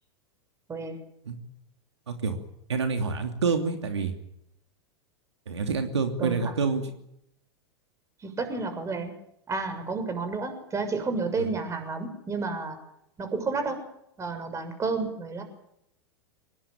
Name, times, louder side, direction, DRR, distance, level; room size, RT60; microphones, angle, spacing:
voice 1, 2.1-2.4 2.7-4.1 5.5-6.9, right 5 dB, 80° right, 6 dB, 2.9 m, -27 dB
voice 2, 6.2-6.5 8.2-9.1 9.5-12.8 13.2-13.8 14.2-15.4, right 4 dB, 20° right, 8 dB, 6.8 m, -31 dB
24.5 x 20.5 x 9.3 m, 0.77 s
hypercardioid pair, 95°, 14 cm